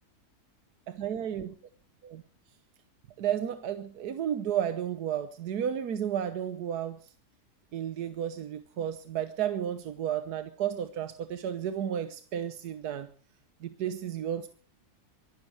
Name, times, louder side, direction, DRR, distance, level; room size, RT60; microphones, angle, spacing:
voice 1, 0.9-1.5 2.0-2.2 3.2-7.1 7.7-13.1 13.6-14.5, right 9 dB, 85° right, 10 dB, 1.5 m, -32 dB
23.5 x 12.0 x 4.6 m, 0.40 s
omnidirectional pair, 1.6 m